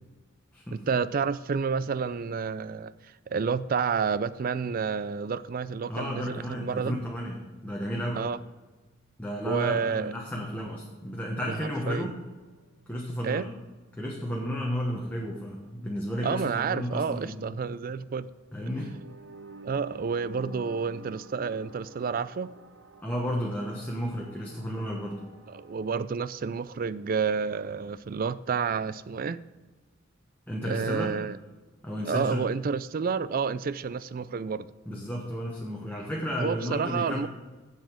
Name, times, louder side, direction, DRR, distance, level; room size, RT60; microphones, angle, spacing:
voice 1, 0.7-2.9 3.3-7.0 8.1-8.4 9.5-10.1 11.5-11.6 11.9-12.1 13.2-13.5 16.2-18.3 19.6-22.5 25.5-29.4 30.6-31.4 32.1-34.7 36.4-37.3, right 5 dB, 45° right, 17 dB, 0.4 m, -30 dB
voice 2, 5.9-8.3 9.2-12.1 12.9-13.5 14.0-17.4 18.5-18.9 23.0-25.2 30.5-31.1 31.8-32.5 34.9-37.3, equal, 10° left, -2 dB, 1.1 m, -33 dB
sound 1, 10.0-27.8, right 1 dB, 65° right, 0.9 m, -53 dB
7.6 x 7.2 x 6.1 m, 1.3 s
head